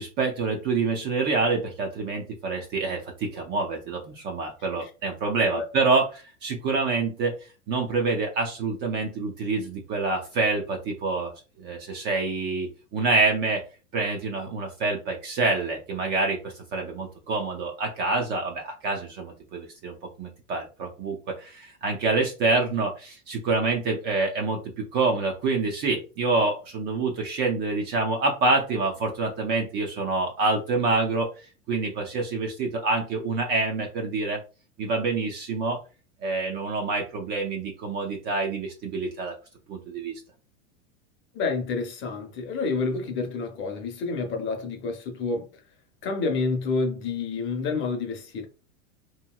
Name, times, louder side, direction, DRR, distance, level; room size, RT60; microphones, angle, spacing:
voice 1, 0.0-7.3 7.7-11.3 11.6-13.6 13.9-31.3 31.7-34.4 34.8-35.8 36.2-39.3 39.7-40.1, right 3 dB, 30° right, 0.4 m, -27 dB
voice 2, 41.3-45.6 46.0-48.5, left 4 dB, 30° left, 0.7 m, -29 dB
2.9 x 2.7 x 2.2 m
supercardioid pair, 130°, 39 cm